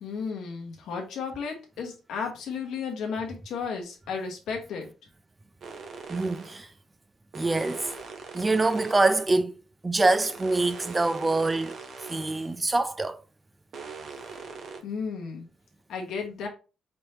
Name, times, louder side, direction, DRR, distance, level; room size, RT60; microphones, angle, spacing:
voice 1, 0.0-4.9 14.8-15.5 15.9-16.5, left 5 dB, 80° left, 0.9 m, -33 dB
sound 1, 5.6-6.7 7.3-9.3 10.1-12.6 13.7-14.8, right 4 dB, 60° right, 1.0 m, -41 dB
voice 2, 6.1-6.7 7.3-7.9 8.3-9.6 9.8-11.8 12.1-13.2, right 2 dB, 20° right, 0.4 m, -25 dB
4.3 x 3.3 x 2.8 m
cardioid pair, 90°, 0 cm